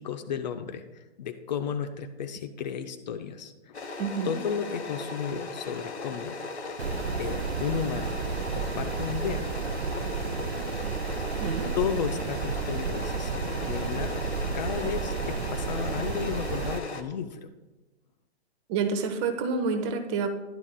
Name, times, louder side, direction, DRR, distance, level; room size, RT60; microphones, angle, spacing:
voice 1, 0.0-3.8 4.2-6.4 7.2-8.2 8.5-9.5 11.7-14.2 14.5-17.5, left 7 dB, 40° left, 8 dB, 0.7 m, -33 dB
sound 1, 3.7-17.0, left 3 dB, 80° left, 1.1 m, -37 dB
voice 2, 4.0-4.4 11.4-11.7 18.7-20.3, right 5 dB, 25° right, 6 dB, 0.9 m, -28 dB
sound 2, 6.8-16.8, right 6 dB, 70° right, 0.6 m, -32 dB
13.0 x 11.0 x 2.2 m, 1.1 s
figure-of-eight pair, 125°, 33 cm